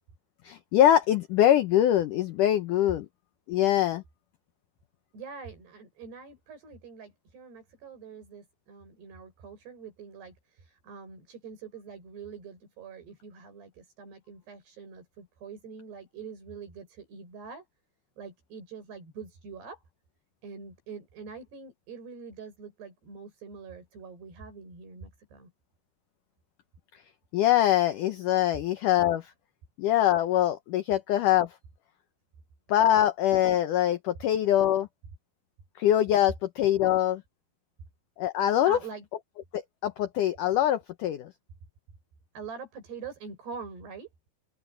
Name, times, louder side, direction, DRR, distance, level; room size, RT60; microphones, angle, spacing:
voice 1, 0.4-3.1 3.5-4.0 27.3-29.3 29.8-31.5 32.7-34.9 35.8-37.2 38.2-38.8 39.5-41.3, left 12 dB, 75° left, 2.0 m, -23 dB
voice 2, 5.1-17.7 18.2-19.8 20.4-25.5 38.7-39.1 42.4-44.1, right 5 dB, 75° right, 8.9 m, -44 dB
open air
omnidirectional pair, 4.7 m